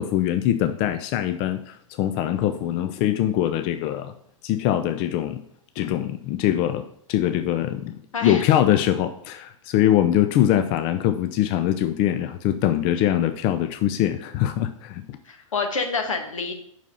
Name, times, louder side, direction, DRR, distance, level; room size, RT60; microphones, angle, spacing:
voice 1, 0.0-4.1 4.4-5.4 5.8-15.2, left 12 dB, 30° left, 8 dB, 0.4 m, -23 dB
voice 2, 8.1-8.5 15.3-16.5, left 4 dB, 75° left, 5 dB, 1.3 m, -27 dB
5.7 x 4.8 x 5.5 m, 0.69 s
figure-of-eight pair, 110°, 17 cm